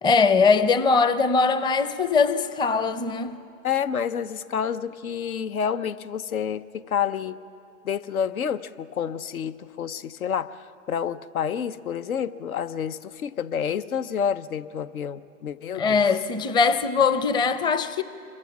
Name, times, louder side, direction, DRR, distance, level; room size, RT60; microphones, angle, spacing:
voice 1, 0.0-3.3 15.8-18.0, left 4 dB, 10° left, 0.5 m, -21 dB
voice 2, 3.6-7.4 7.8-10.6 10.9-16.0, left 8 dB, 85° left, 0.8 m, -29 dB
27.0 x 23.0 x 6.0 m
hypercardioid pair, 110°, 42 cm